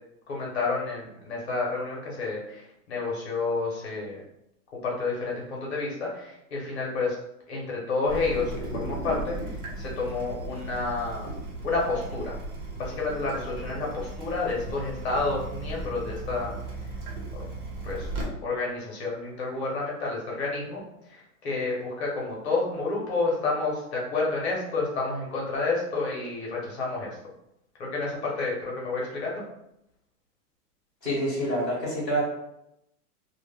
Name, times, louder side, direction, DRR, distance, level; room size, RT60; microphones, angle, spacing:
voice 1, 0.3-4.2 4.8-7.2 7.5-11.3 11.6-12.4 12.8-16.5 16.8-16.9 17.3-17.4 17.8-18.1 18.4-27.2 27.8-29.4, left 3 dB, 45° left, -3 dB, 0.7 m, -30 dB
Water tap faucet / Drip, 8.1-18.2, right 1 dB, 60° right, 1.0 m, -36 dB
voice 2, 31.0-32.2, equal, 5° right, -16 dB, 0.6 m, -27 dB
2.1 x 2.0 x 3.3 m, 0.81 s
supercardioid pair, 175°, 48 cm